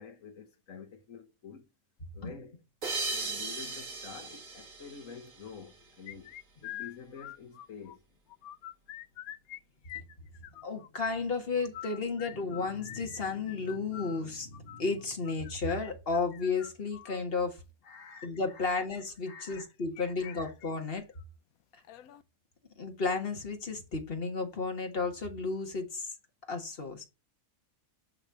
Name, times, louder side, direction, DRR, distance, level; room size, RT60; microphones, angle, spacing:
voice 1, 0.0-1.7 2.1-2.6 3.1-6.3 6.6-8.0 17.8-18.9 19.2-19.7 20.0-20.5, left 6 dB, 65° left, 1.5 m, -48 dB
sound 1, 2.8-5.9, right 3 dB, 65° right, 2.3 m, -37 dB
sound 2, 6.1-8.0 8.3-9.6 9.8-10.9 11.6-17.2 18.0-18.3 19.5-20.3 20.6-20.7 21.1-21.2 21.8-22.2, left 13 dB, 80° left, 1.1 m, -46 dB
voice 2, 10.6-17.6 18.2-21.0 22.8-26.1 26.5-27.0, left 4 dB, 40° left, 1.8 m, -33 dB
9.7 x 3.3 x 6.3 m
omnidirectional pair, 1.5 m